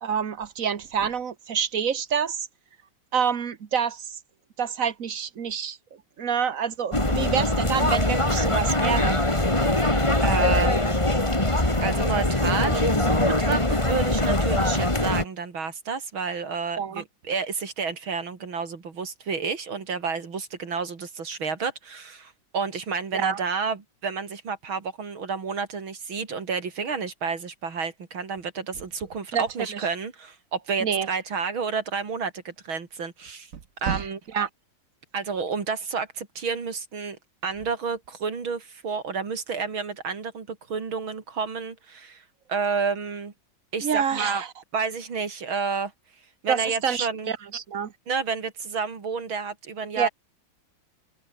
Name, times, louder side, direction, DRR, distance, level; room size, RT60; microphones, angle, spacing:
voice 1, 0.0-2.5 3.1-4.2 4.6-5.8 6.2-9.2 16.8-17.0 23.1-23.4 29.3-29.4 29.7-29.8 30.8-31.1 33.5-34.5 43.8-44.5 46.5-47.9 50.0-50.1, right 7 dB, 45° right, 1.5 m, -27 dB
sound 1, 6.9-15.2, left 1 dB, 15° left, 3.2 m, -22 dB
voice 2, 10.2-11.0 11.8-33.5 33.8-34.2 35.1-37.2 37.4-42.2 42.5-43.3 43.7-44.4 44.7-45.9 46.4-47.3 48.1-50.1, right 5 dB, 90° right, 3.9 m, -30 dB
open air
omnidirectional pair, 2.1 m